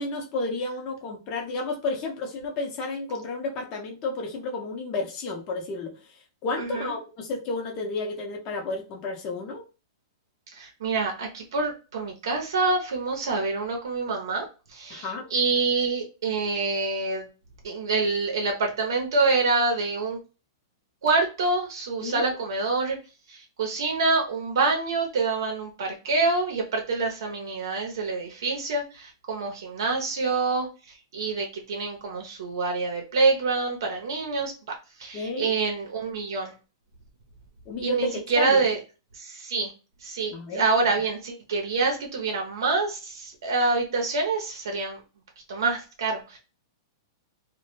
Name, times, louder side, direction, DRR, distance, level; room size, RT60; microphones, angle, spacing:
voice 1, 0.0-9.7 14.9-15.3 22.0-22.2 35.1-35.5 37.7-38.6 40.3-40.7, left 3 dB, 40° left, 1 dB, 0.7 m, -32 dB
voice 2, 6.6-6.9 10.5-17.3 17.6-20.2 21.0-23.0 23.3-36.5 37.8-38.8 39.1-39.7 40.0-45.0 45.5-46.4, right 3 dB, 75° right, 2 dB, 0.6 m, -26 dB
2.1 x 2.0 x 3.0 m, 0.32 s
hypercardioid pair, 125°, 2 cm